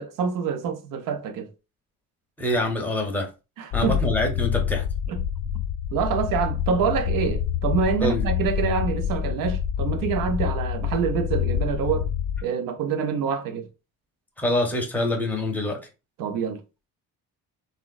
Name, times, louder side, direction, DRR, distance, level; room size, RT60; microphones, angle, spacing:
voice 1, 0.0-1.5 3.6-4.0 5.1-5.2 5.9-12.1 12.4-13.6 16.2-16.6, right 6 dB, 70° right, 0.6 m, -26 dB
voice 2, 2.4-3.3 3.7-4.8 8.0-8.2 14.4-15.8, left 1 dB, 5° left, 0.6 m, -25 dB
sound 1, 3.7-12.4, left 9 dB, 80° left, 0.6 m, -27 dB
3.6 x 2.1 x 2.2 m
cardioid pair, 150°, 35 cm